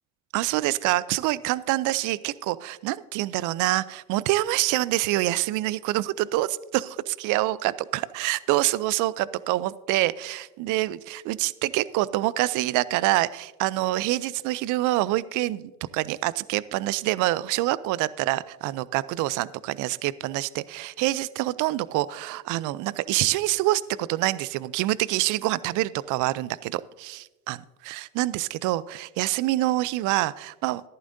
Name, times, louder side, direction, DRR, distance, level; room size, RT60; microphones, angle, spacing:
voice 1, 0.3-30.8, right 17 dB, 50° right, 19 dB, 0.5 m, -26 dB
13.5 x 11.0 x 2.7 m, 1.2 s
supercardioid pair, 95°, 40 cm